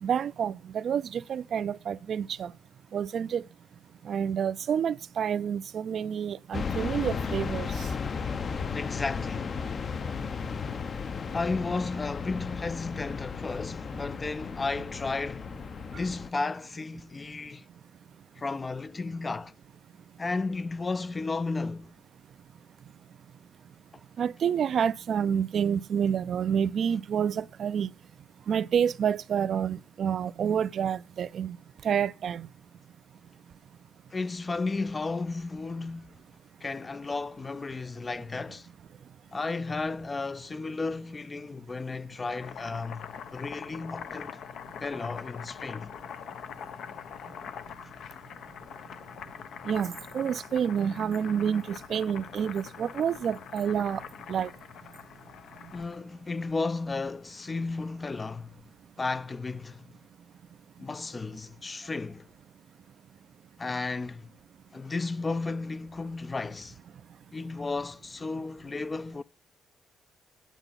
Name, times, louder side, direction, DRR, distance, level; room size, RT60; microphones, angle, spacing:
voice 1, 0.0-2.5 2.9-3.4 4.1-7.7 24.2-27.9 28.5-31.6 31.8-32.5 49.7-54.0 54.3-54.5, right 8 dB, 60° right, 0.5 m, -28 dB
sound 1, 6.5-16.3, left 5 dB, 45° left, 0.9 m, -34 dB
voice 2, 8.7-9.5 11.3-15.5 16.0-17.6 18.4-19.5 20.2-21.9 34.1-36.2 36.6-38.7 39.3-44.4 44.8-45.9 47.8-47.9 55.7-58.6 59.0-59.9 60.8-62.3 63.6-64.3 64.7-66.8 67.3-69.2, left 3 dB, 25° left, 0.5 m, -33 dB
Boiling, 42.2-56.0, left 8 dB, 70° left, 1.0 m, -43 dB
9.0 x 8.1 x 5.8 m
cardioid pair, 90°, 0 cm